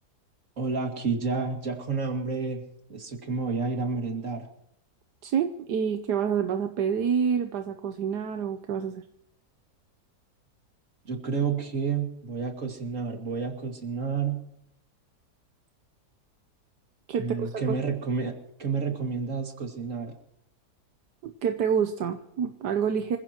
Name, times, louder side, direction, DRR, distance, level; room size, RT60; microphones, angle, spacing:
voice 1, 0.6-2.6 2.9-4.5 11.1-14.4 17.2-18.3 18.6-20.1, right 5 dB, 50° right, 3 dB, 2.7 m, -30 dB
voice 2, 5.2-9.0 17.1-17.6 21.2-23.2, right 7 dB, 80° right, 7 dB, 1.5 m, -27 dB
27.0 x 16.0 x 3.0 m, 0.78 s
omnidirectional pair, 1.8 m